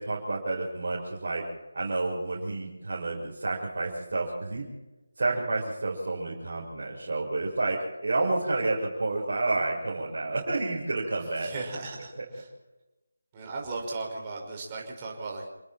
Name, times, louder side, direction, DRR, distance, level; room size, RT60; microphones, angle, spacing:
voice 1, 0.0-1.4 1.7-4.7 5.2-11.5, right 2 dB, 50° right, -5 dB, 6.4 m, -30 dB
voice 2, 11.4-12.5 13.3-15.4, right 3 dB, 25° right, -1 dB, 5.7 m, -36 dB
29.0 x 20.5 x 4.5 m, 1.0 s
figure-of-eight pair, 160°, 0 cm